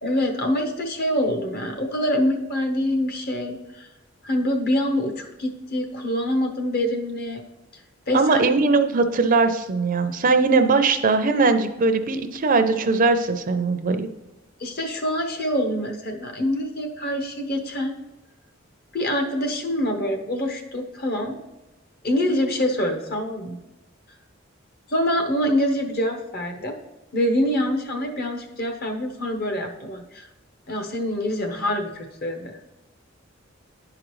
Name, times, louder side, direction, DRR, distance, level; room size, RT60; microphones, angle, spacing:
voice 1, 0.0-3.9 4.2-7.4 8.1-8.4 14.6-18.0 18.9-21.4 22.0-23.6 24.9-26.7 27.1-30.3 30.7-32.5, left 1 dB, 50° left, 4 dB, 1.0 m, -25 dB
voice 2, 8.1-14.1, right 3 dB, 45° right, 8 dB, 0.5 m, -20 dB
10.5 x 4.9 x 3.1 m, 1.0 s
head